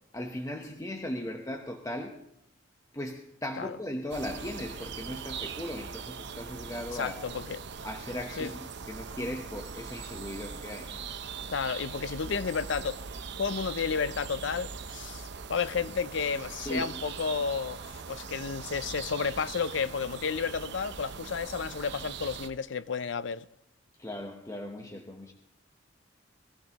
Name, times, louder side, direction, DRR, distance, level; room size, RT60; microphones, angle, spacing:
voice 1, 0.1-2.2 2.9-7.2 7.8-11.0 16.7-16.9 24.0-25.3, left 1 dB, 15° left, 1.0 m, -38 dB
sound 1, 4.1-22.5, right 5 dB, 60° right, 0.7 m, -41 dB
voice 2, 6.9-7.6 8.4-8.5 11.5-13.0 13.4-23.5, left 5 dB, 65° left, 0.5 m, -32 dB
21.5 x 15.0 x 3.0 m
head